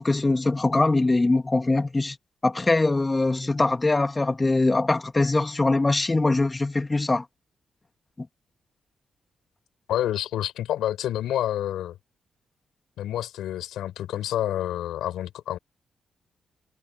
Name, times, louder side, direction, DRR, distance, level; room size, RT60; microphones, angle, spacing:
voice 1, 0.0-2.2 2.4-7.2 8.2-8.3, left 2 dB, 30° left, 2.6 m, -22 dB
voice 2, 9.9-12.0 13.0-15.6, left 12 dB, 80° left, 7.0 m, -28 dB
supercardioid pair, 45°, 0 cm